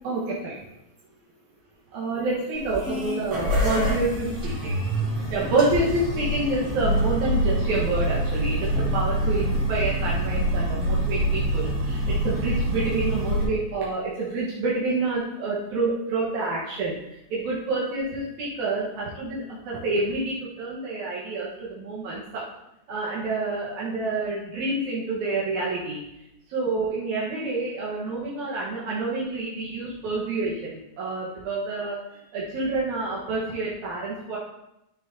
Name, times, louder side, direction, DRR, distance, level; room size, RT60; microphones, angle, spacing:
voice 1, 0.0-0.6 1.9-4.8 5.3-22.4 22.9-26.0 26.5-34.4, right 3 dB, 75° right, -6 dB, 2.7 m, -28 dB
sound 1, 2.5-13.4, equal, 55° right, 4.2 m, -25 dB
12.5 x 6.4 x 2.7 m, 0.85 s
omnidirectional pair, 3.4 m